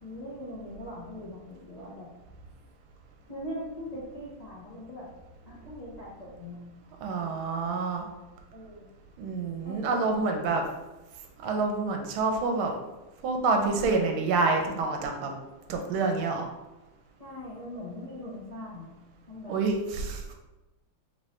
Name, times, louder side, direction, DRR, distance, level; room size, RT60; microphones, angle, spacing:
voice 1, 0.0-2.1 3.3-5.1 5.5-6.6 8.5-8.9 9.6-10.7 17.2-18.9 19.3-19.6, left 1 dB, 65° left, -8 dB, 0.4 m, -41 dB
voice 2, 7.0-8.1 9.2-10.6 11.4-12.7 13.2-15.3 15.7-16.5 19.5-20.3, right 3 dB, 80° right, 3 dB, 1.4 m, -27 dB
3.6 x 3.1 x 4.1 m, 1.1 s
omnidirectional pair, 2.4 m